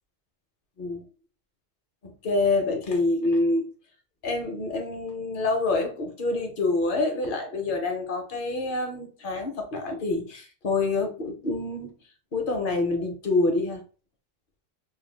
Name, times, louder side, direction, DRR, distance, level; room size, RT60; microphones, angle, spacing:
voice 1, 2.0-3.7 4.2-11.9 12.3-13.8, left 2 dB, 60° left, 0.8 m, -27 dB
2.4 x 2.1 x 3.2 m
omnidirectional pair, 1.0 m